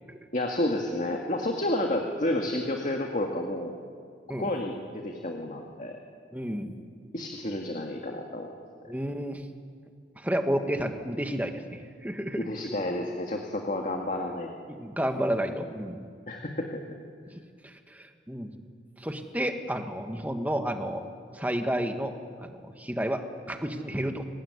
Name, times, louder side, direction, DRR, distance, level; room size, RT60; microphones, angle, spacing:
voice 1, 0.3-3.7 4.3-6.0 7.1-8.5 12.4-14.5 16.3-16.8, left 1 dB, 45° left, 2 dB, 2.0 m, -30 dB
voice 2, 6.3-6.7 8.9-9.4 10.2-12.5 14.7-16.1 17.6-18.5 19.0-21.0 21.3-24.2, equal, 10° right, 5 dB, 1.7 m, -31 dB
24.0 x 19.5 x 9.7 m, 2.1 s
head